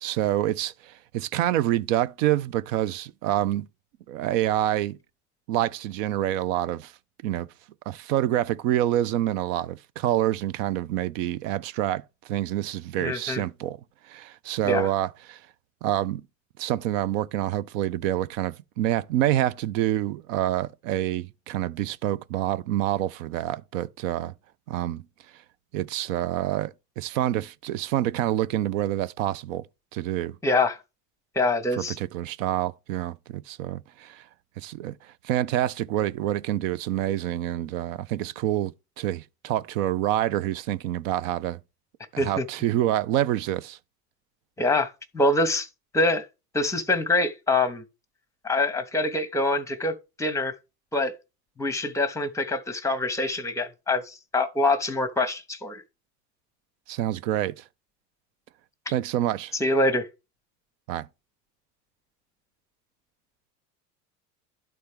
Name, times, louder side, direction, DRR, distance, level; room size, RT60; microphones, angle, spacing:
voice 1, 0.0-3.7 4.1-5.0 5.5-6.9 7.2-7.5 7.9-13.8 14.1-15.4 15.8-16.2 16.6-24.3 24.7-25.0 25.7-29.6 29.9-30.4 31.8-34.2 34.6-35.0 35.2-41.6 42.1-43.8 56.9-57.6 58.9-59.5 60.9-61.1, right 13 dB, 55° right, 0.6 m, -27 dB
voice 2, 13.0-13.4 14.6-14.9 30.4-30.8 31.3-32.0 42.2-42.4 44.6-45.7 45.9-46.2 46.5-47.8 48.4-50.5 50.9-51.1 51.6-55.8 59.5-60.1, left 2 dB, 5° left, 0.9 m, -25 dB
12.0 x 4.2 x 3.4 m
hypercardioid pair, 80°, 47 cm